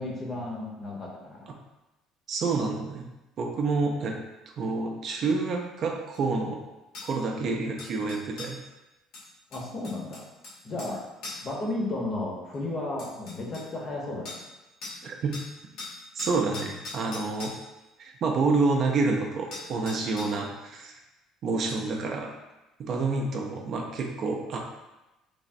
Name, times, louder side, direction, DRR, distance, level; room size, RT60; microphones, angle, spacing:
voice 1, 0.0-1.5 9.5-10.3 10.6-11.0 11.4-14.4, left 2 dB, 35° left, -2 dB, 0.7 m, -33 dB
voice 2, 2.3-3.1 3.4-4.2 4.6-6.6 7.0-8.6 15.0-15.4 16.2-17.5 18.0-21.0 21.4-22.3 22.8-24.6, right 3 dB, 50° right, 1 dB, 0.4 m, -28 dB
sound 1, 6.1-6.2 6.9-7.1 7.8-8.6 9.1-11.0 11.2-11.5 12.5-12.6 13.0-13.7 14.3-14.5 14.8-15.0 15.3-17.6 19.1-19.2 19.5-20.4 21.7-21.8, left 3 dB, 70° left, 1.0 m, -41 dB
3.3 x 2.0 x 2.5 m, 1.0 s
cardioid pair, 115°, 0 cm